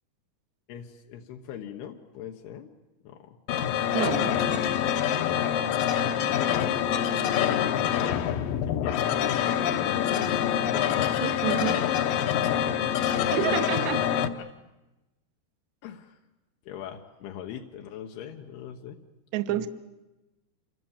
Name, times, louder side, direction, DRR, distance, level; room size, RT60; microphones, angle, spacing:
voice 1, 0.7-2.7 3.0-3.4 8.7-10.6 12.4-12.9 13.4-13.5 14.2-14.5 15.8-16.2 16.7-19.0 19.5-19.7, left 9 dB, 85° left, 2 dB, 3.3 m, -41 dB
sound 1, 3.5-14.3, left 10 dB, 70° left, 2.5 m, -25 dB
voice 2, 3.9-4.4 11.2-11.8 13.3-14.0 19.3-19.7, right 12 dB, 65° right, 10 dB, 1.9 m, -28 dB
28.0 x 25.0 x 7.3 m, 1.0 s
omnidirectional pair, 4.5 m